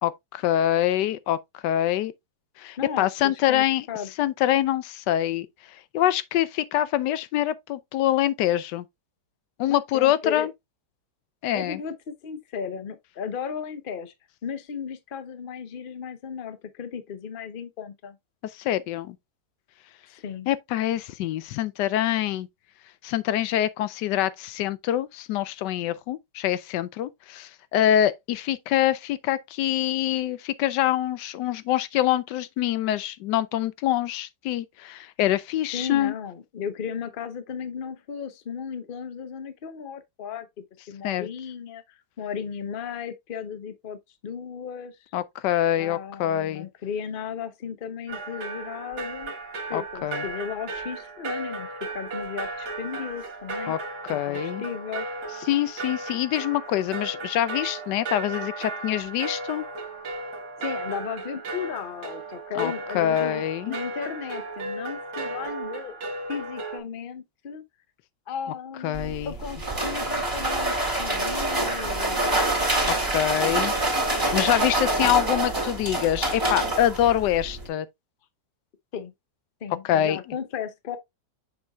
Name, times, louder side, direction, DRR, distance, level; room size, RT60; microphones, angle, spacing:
voice 1, 0.0-2.1 2.6-3.8 4.2-5.5 5.9-8.8 9.6-10.5 11.4-11.8 18.5-19.2 20.5-22.5 23.0-36.1 41.0-41.3 45.1-46.7 49.7-50.2 53.7-53.8 54.0-54.6 55.5-59.6 62.5-63.8 68.8-69.3 72.9-73.7 74.3-77.9 79.8-80.2, left 12 dB, 85° left, 1.2 m, -25 dB
voice 2, 2.8-4.1 9.7-10.5 11.5-14.1 14.4-18.2 20.1-20.5 35.7-40.5 40.9-45.0 45.8-49.3 49.7-53.7 54.1-55.1 60.6-66.0 66.3-67.6 68.3-70.7 71.0-72.5 78.9-79.1 79.6-81.0, left 7 dB, 45° left, 0.8 m, -35 dB
sound 1, 48.1-66.8, right 3 dB, 65° right, 2.1 m, -35 dB
sound 2, 68.9-77.7, right 2 dB, 10° right, 2.4 m, -26 dB
6.9 x 6.5 x 2.3 m
omnidirectional pair, 1.8 m